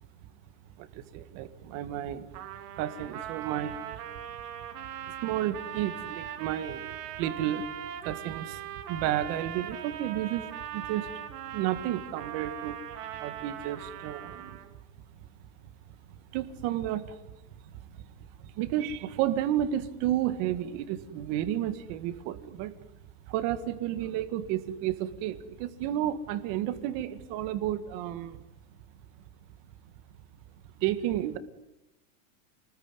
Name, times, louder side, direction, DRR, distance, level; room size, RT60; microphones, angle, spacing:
voice 1, 0.8-2.3 2.7-4.1 5.2-7.7 8.0-8.6 8.9-11.1 11.5-12.8 13.2-14.6 16.3-17.2 17.6-17.7 18.4-22.7 23.3-28.4 30.8-31.4, right 12 dB, 30° right, 11 dB, 1.8 m, -32 dB
Trumpet, 2.3-14.8, right 10 dB, 70° right, 3.3 m, -40 dB
28.5 x 20.5 x 9.8 m, 0.94 s
supercardioid pair, 175°, 48 cm